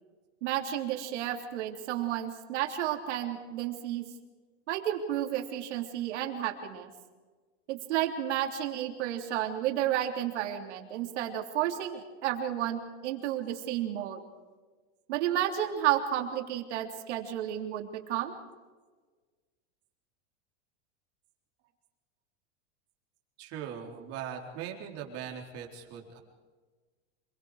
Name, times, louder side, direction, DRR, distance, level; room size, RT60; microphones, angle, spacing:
voice 1, 0.4-4.0 4.7-6.9 7.7-14.2 15.1-18.3, right 11 dB, 80° right, 4 dB, 3.4 m, -32 dB
voice 2, 23.4-26.2, right 8 dB, 45° right, 1 dB, 3.8 m, -40 dB
27.0 x 22.5 x 5.0 m, 1.4 s
supercardioid pair, 155°, 34 cm